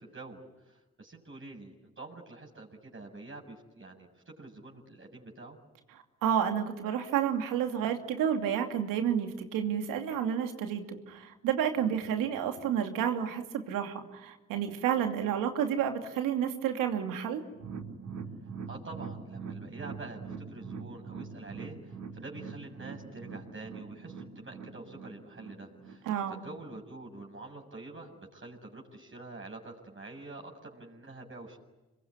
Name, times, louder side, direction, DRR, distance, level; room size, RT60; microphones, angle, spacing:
voice 1, 0.0-5.6 18.7-31.6, right 2 dB, 40° right, 0 dB, 7.3 m, -46 dB
voice 2, 6.2-17.4 26.1-26.4, right 9 dB, 85° right, 5 dB, 2.7 m, -30 dB
sound 1, 17.5-26.8 27.1-27.2 27.6-27.7, right 5 dB, 55° right, 3.8 m, -43 dB
27.0 x 22.5 x 9.9 m, 1.1 s
supercardioid pair, 50°, 32 cm